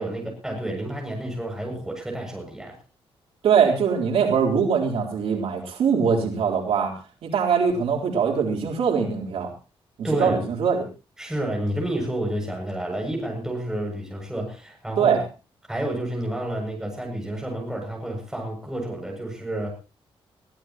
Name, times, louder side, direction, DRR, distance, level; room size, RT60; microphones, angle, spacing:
voice 1, 0.0-2.8 10.0-10.4 11.2-15.2 15.7-19.7, right 1 dB, 5° right, 0 dB, 7.3 m, -30 dB
voice 2, 3.4-6.9 7.2-9.5 10.2-10.9 15.0-15.2, right 6 dB, 85° right, 1 dB, 3.9 m, -22 dB
22.5 x 16.0 x 3.1 m, 0.32 s
wide cardioid pair, 165°, 10 cm